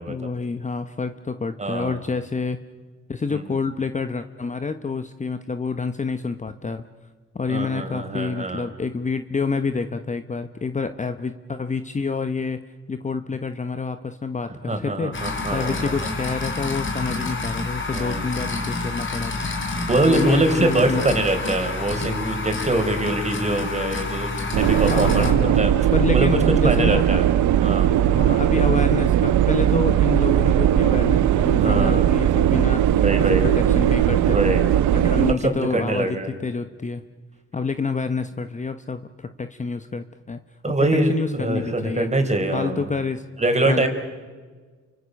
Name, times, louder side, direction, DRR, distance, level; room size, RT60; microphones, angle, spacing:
voice 1, 0.1-2.6 3.1-6.8 7.3-12.6 12.9-21.0 24.8-25.6 25.9-27.2 28.1-33.0 33.4-34.6 34.9-37.0 37.5-40.4 40.7-42.1 42.5-43.2 43.7-43.9, left 4 dB, 25° left, 9 dB, 1.0 m, -28 dB
voice 2, 1.6-2.0 3.3-3.4 7.5-8.7 14.7-16.1 17.9-18.2 19.9-25.9 26.1-26.4 26.6-27.3 27.6-27.9 31.6-32.1 33.0-33.6 34.3-34.6 35.3-36.4 40.6-42.9 43.4-43.9, right 2 dB, 20° right, 6 dB, 4.4 m, -23 dB
sound 1, 15.1-25.3, left 3 dB, 40° left, 4.5 m, -28 dB
sound 2, 24.5-35.3, right 11 dB, 75° right, 0.8 m, -19 dB
30.0 x 24.5 x 6.5 m, 1.4 s
cardioid pair, 90°, 30 cm